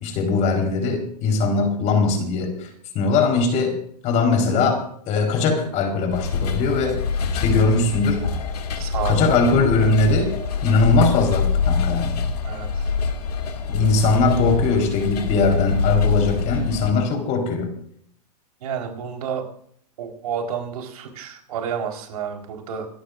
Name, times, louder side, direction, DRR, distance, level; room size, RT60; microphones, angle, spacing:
voice 1, 0.0-2.7 2.9-7.0 7.4-8.3 9.0-10.4 10.6-12.2 13.7-17.8, left 3 dB, 35° left, 4.0 m, -21 dB
sound 1, 6.1-16.9, left 5 dB, 70° left, 2.3 m, -24 dB
voice 2, 8.7-9.2 12.4-12.9 18.6-19.4 20.0-22.9, right 7 dB, 65° right, 4.1 m, -30 dB
27.0 x 13.0 x 2.5 m
hypercardioid pair, 120°, 21 cm